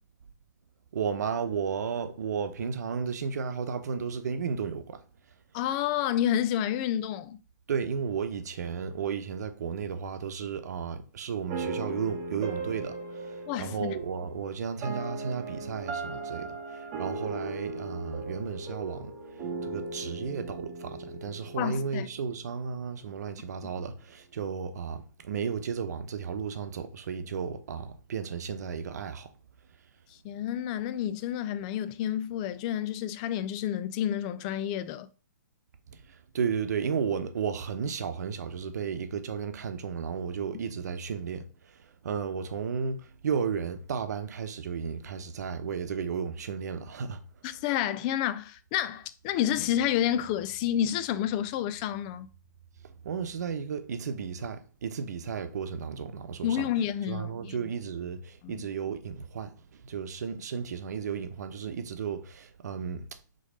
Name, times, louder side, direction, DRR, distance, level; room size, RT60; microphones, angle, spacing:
voice 1, 0.9-5.0 7.7-19.1 19.6-29.3 35.9-47.2 53.0-56.7 57.1-59.5 59.8-63.0, right 6 dB, 60° right, 0.9 m, -34 dB
voice 2, 5.5-7.4 13.5-14.0 21.6-22.1 30.2-35.1 47.4-52.3 56.4-57.6 58.4-58.7, left 11 dB, 20° left, 0.4 m, -29 dB
sound 1, 11.5-22.6, right 3 dB, 25° right, 0.9 m, -38 dB
5.4 x 3.9 x 5.1 m
hypercardioid pair, 160°, 10 cm